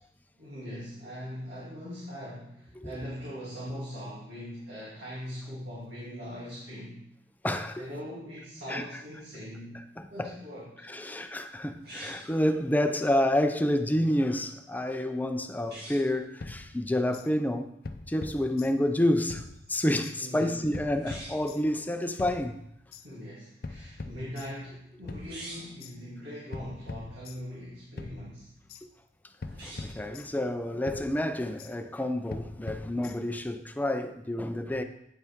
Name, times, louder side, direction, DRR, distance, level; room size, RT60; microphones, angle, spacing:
voice 1, 0.4-7.1 7.8-9.8 10.1-10.8 20.2-20.6 23.0-28.5, equal, 80° right, 2.5 m, -41 dB
voice 2, 7.4-7.8 8.7-8.9 10.2-10.3 10.9-17.7 18.1-19.4 19.7-22.6 29.6-34.8, left 1 dB, 10° left, 0.5 m, -29 dB
sound 1, 11.8-12.4 15.6-16.1 20.9-21.5 25.1-25.8 29.4-30.1, right 1 dB, 65° right, 2.3 m, -45 dB
sound 2, 16.4-17.3 17.8-19.0 19.3-20.2 20.7-21.8 22.2-23.1 23.6-24.8 25.1-25.9 26.5-27.7 28.0-28.8 29.4-30.6 30.9-31.7 32.3-33.5, left 3 dB, 60° left, 0.6 m, -43 dB
9.3 x 7.2 x 3.6 m
head